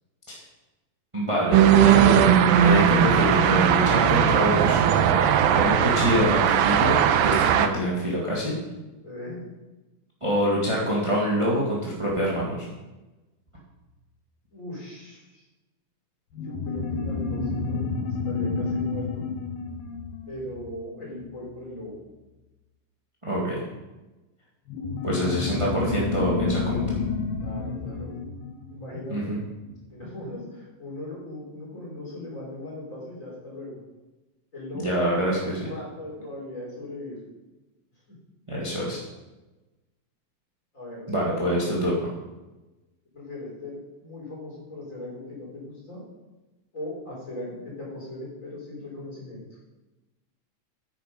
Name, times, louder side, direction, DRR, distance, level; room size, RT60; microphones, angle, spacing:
voice 1, 1.1-4.9 5.5-8.5 10.2-12.7 23.2-23.6 25.0-27.0 29.1-29.4 34.7-35.7 38.5-39.0 41.1-41.9, equal, 15° right, -5 dB, 1.0 m, -25 dB
sound 1, 1.5-7.7, right 9 dB, 85° right, 2.4 m, -19 dB
voice 2, 9.0-9.4 14.5-15.4 16.4-19.3 20.3-22.0 27.4-28.1 28.7-29.4 29.9-33.8 34.5-37.2 40.7-41.5 43.1-46.0 46.7-49.4, left 1 dB, 20° left, -4 dB, 4.0 m, -39 dB
sound 2, 16.4-21.3 24.7-29.6, left 4 dB, 90° left, 3.1 m, -30 dB
9.7 x 9.1 x 5.3 m, 1.1 s
omnidirectional pair, 4.1 m